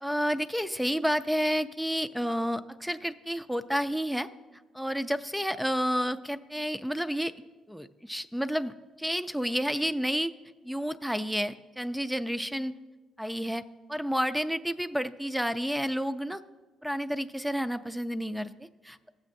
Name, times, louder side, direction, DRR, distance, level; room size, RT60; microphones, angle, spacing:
voice 1, 0.0-4.3 4.7-7.3 7.7-10.3 10.6-12.7 13.2-13.6 13.9-16.4 16.8-19.0, equal, ahead, 11 dB, 0.4 m, -30 dB
16.5 x 7.3 x 2.6 m, 1.3 s
cardioid pair, 90°, 0 cm